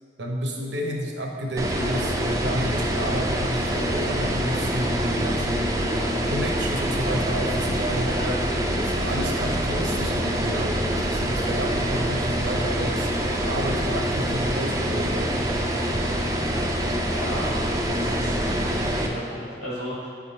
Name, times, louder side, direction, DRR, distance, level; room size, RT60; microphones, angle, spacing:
voice 1, 0.2-5.7 6.3-8.1 8.8-15.3, equal, 80° right, 0 dB, 0.9 m, -30 dB
sound 1, 1.6-19.1, equal, 20° right, 0.4 m, -25 dB
voice 2, 17.0-17.6 17.8-20.1, equal, 40° left, -5 dB, 1.4 m, -35 dB
7.9 x 3.7 x 4.1 m, 2.3 s
head